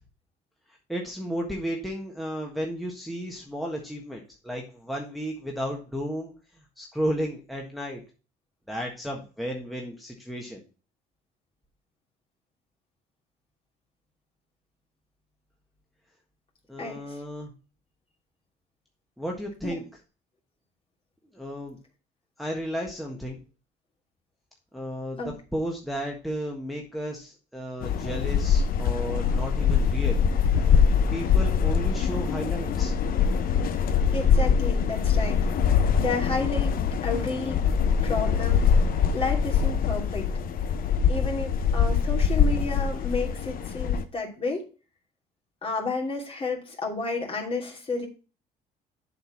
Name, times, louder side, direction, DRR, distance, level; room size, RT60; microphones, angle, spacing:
voice 1, 0.9-6.3 6.8-8.0 8.7-10.6 16.7-17.5 19.2-19.8 21.3-21.8 22.4-23.4 24.7-25.2 25.5-30.8 31.1-32.9, equal, ahead, -1 dB, 1.4 m, -33 dB
voice 2, 16.8-17.2 19.6-19.8 25.2-25.3 34.1-35.5 36.0-37.6 38.0-38.7 39.1-40.3 41.1-44.7 45.6-48.1, left 3 dB, 35° left, -1 dB, 2.8 m, -31 dB
sound 1, 27.8-44.0, left 6 dB, 60° left, 0.9 m, -23 dB
7.8 x 4.6 x 5.9 m, 0.34 s
cardioid pair, 110°, 17 cm